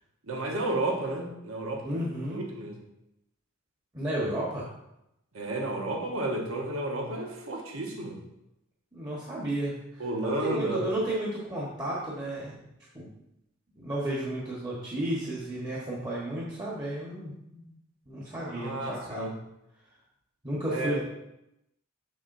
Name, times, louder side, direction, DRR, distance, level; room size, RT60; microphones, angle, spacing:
voice 1, 0.3-2.0 2.3-2.8 5.3-8.2 10.0-10.9 18.5-19.3 20.7-21.0, right 2 dB, 75° right, 2 dB, 1.1 m, -32 dB
voice 2, 1.8-2.4 3.9-4.7 8.9-12.6 12.9-13.1 13.8-17.7 18.1-19.3 20.4-21.0, right 1 dB, 20° right, -7 dB, 1.3 m, -33 dB
7.0 x 6.8 x 2.6 m, 0.85 s
head